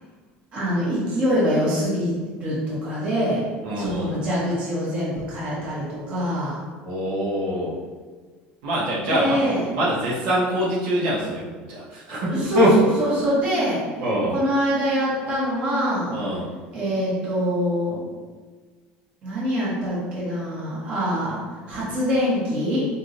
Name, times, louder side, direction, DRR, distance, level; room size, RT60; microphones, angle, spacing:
voice 1, 0.5-6.6 9.1-9.6 12.2-13.8 14.3-16.2 16.7-18.1 19.2-21.4 21.7-22.8, equal, 35° right, -7 dB, 1.4 m, -24 dB
voice 2, 3.6-4.1 6.8-7.8 8.6-9.4 9.7-12.7 14.0-14.3 16.1-16.4, equal, 80° right, -6 dB, 1.3 m, -24 dB
4.4 x 3.6 x 2.6 m, 1.4 s
cardioid pair, 165°, 4 cm